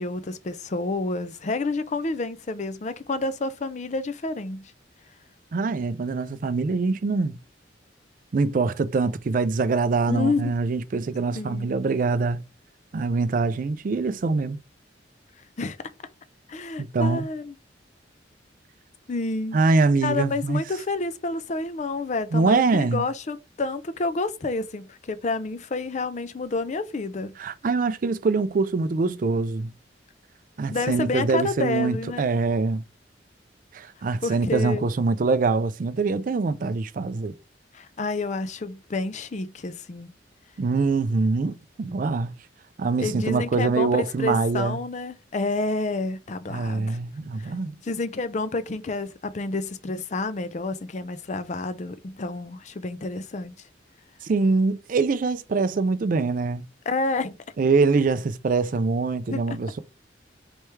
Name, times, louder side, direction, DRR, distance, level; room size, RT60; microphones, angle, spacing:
voice 1, 0.0-4.7 10.1-10.6 11.3-11.7 15.6-15.8 16.5-17.5 19.1-19.6 20.0-27.4 30.7-32.3 34.2-34.9 37.7-40.1 43.0-47.0 47.4-47.5 47.8-53.5 56.9-57.4 59.3-59.6, left 3 dB, 40° left, 0.5 m, -29 dB
voice 2, 5.5-7.4 8.3-12.4 12.9-14.6 16.8-17.3 19.5-20.6 22.3-23.0 27.4-29.7 30.6-32.8 33.7-37.3 40.6-42.3 42.8-44.8 46.5-47.7 54.2-56.6 57.6-59.8, right 4 dB, 45° right, 0.4 m, -24 dB
4.3 x 3.4 x 3.2 m
head